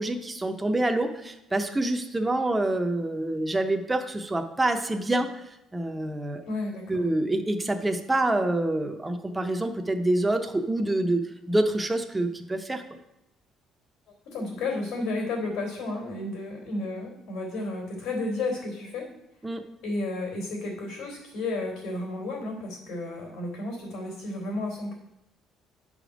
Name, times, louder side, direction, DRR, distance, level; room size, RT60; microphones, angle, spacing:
voice 1, 0.0-5.3 5.7-6.4 6.9-12.8 19.4-19.7, right 1 dB, 10° right, 5 dB, 0.6 m, -26 dB
voice 2, 6.4-7.0 14.2-19.1 19.8-24.9, left 2 dB, 85° left, -3 dB, 3.1 m, -32 dB
8.6 x 5.0 x 5.0 m, 0.88 s
cardioid pair, 165°, 0 cm